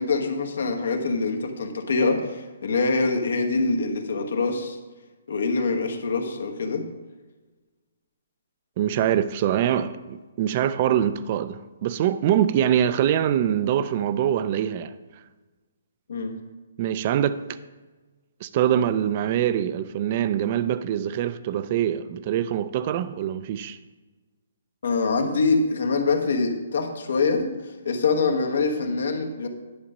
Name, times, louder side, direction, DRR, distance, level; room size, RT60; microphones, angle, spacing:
voice 1, 0.0-4.8 5.3-6.8 16.1-16.3 24.8-27.5 27.8-29.5, left 3 dB, 75° left, 1.3 m, -24 dB
voice 2, 8.8-14.9 16.8-17.4 18.4-23.8, right 10 dB, 35° right, 0.4 m, -24 dB
10.0 x 5.0 x 5.4 m
hypercardioid pair, 160°, 0 cm